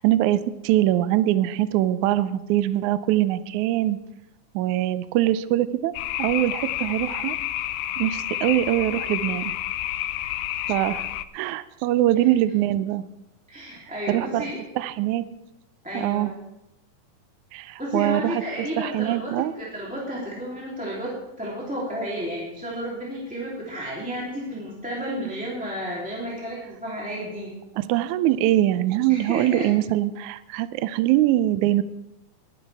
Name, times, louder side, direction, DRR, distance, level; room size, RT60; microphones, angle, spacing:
voice 1, 0.0-4.0 4.6-5.9 6.2-7.4 8.0-9.5 10.7-11.1 11.3-13.0 14.1-14.5 14.8-15.3 15.9-16.3 17.5-18.4 18.8-19.5 27.8-31.8, right 14 dB, 85° right, 13 dB, 1.7 m, -23 dB
sound 1, 5.9-11.2, left 13 dB, 80° left, 2.1 m, -29 dB
voice 2, 13.5-14.6 15.8-16.3 17.8-27.6 29.1-29.7, equal, ahead, -6 dB, 2.4 m, -32 dB
20.5 x 11.5 x 3.4 m, 0.92 s
omnidirectional pair, 4.1 m